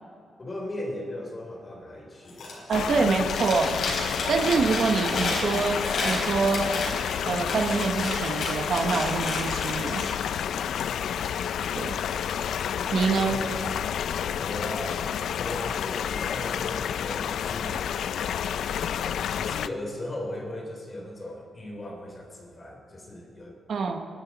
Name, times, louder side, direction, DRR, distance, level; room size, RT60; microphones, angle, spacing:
voice 1, 0.4-3.3 13.3-13.6 14.4-15.1 15.3-17.8 19.4-23.5, left 1 dB, 25° left, 0 dB, 3.1 m, -37 dB
Chewing mastication, 2.3-2.8 3.1-10.1, left 2 dB, 60° left, 4.5 m, -32 dB
sound 1, 2.7-19.7, left 8 dB, 85° left, 0.4 m, -30 dB
voice 2, 2.7-3.8 4.3-6.7 7.3-10.0 11.7-12.0 12.9-13.4 23.7-24.0, right 4 dB, 50° right, 5 dB, 1.0 m, -25 dB
28.0 x 12.0 x 4.0 m, 2.6 s
wide cardioid pair, 180°, 0 cm